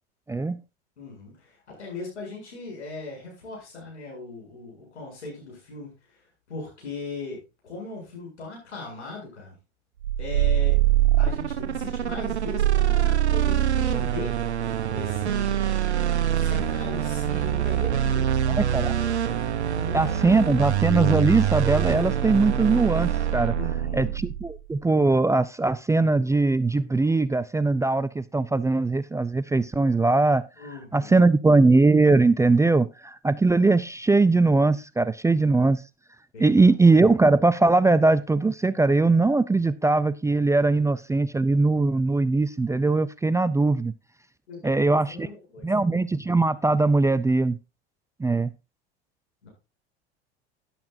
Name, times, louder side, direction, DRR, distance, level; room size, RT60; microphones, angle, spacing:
voice 1, 1.0-5.9 6.5-7.4 7.6-9.6 10.2-10.8 11.2-14.3 14.9-15.6 15.9-18.3 19.7-20.1 23.5-24.1 30.6-31.3 36.3-36.7 44.5-45.8 49.4-49.5, left 3 dB, 90° left, 8.0 m, -39 dB
sound 1, 10.0-24.6, right 11 dB, 90° right, 1.1 m, -24 dB
voice 2, 18.5-18.9 19.9-23.5 23.9-30.4 30.9-35.8 36.4-43.9 44.6-45.3 45.6-47.6 48.2-48.5, right 3 dB, 10° right, 0.5 m, -21 dB
12.5 x 10.5 x 2.7 m
hypercardioid pair, 85°, 33 cm